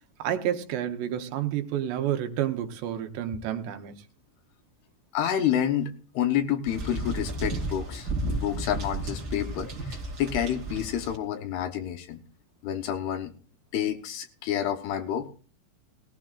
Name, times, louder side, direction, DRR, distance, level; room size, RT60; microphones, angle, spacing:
voice 1, 0.2-4.0, right 11 dB, 80° right, 3.1 m, -30 dB
voice 2, 5.1-12.2 12.6-13.3 13.7-15.3, left 10 dB, 75° left, 2.8 m, -29 dB
sound 1, 6.7-11.2, right 2 dB, 30° right, 2.0 m, -33 dB
19.0 x 15.5 x 2.4 m
omnidirectional pair, 5.0 m